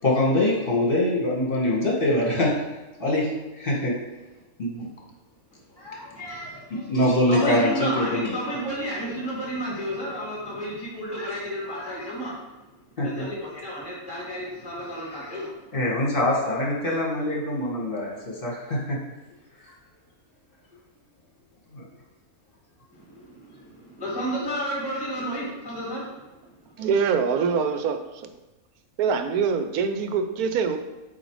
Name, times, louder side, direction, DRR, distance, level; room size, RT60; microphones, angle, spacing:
voice 1, 0.0-2.5 3.0-3.9 4.6-4.9 6.7-8.4 13.0-13.2 15.7-19.0 19.6-19.7 21.7-21.8, left 1 dB, 40° left, -3 dB, 1.7 m, -24 dB
voice 2, 5.7-6.9 7.3-12.7 13.0-15.7 22.9-26.9, equal, 15° left, -6 dB, 2.0 m, -32 dB
voice 3, 26.8-28.3 29.0-30.8, right 6 dB, 85° right, 8 dB, 1.1 m, -24 dB
7.8 x 2.8 x 4.7 m, 1.1 s
omnidirectional pair, 1.5 m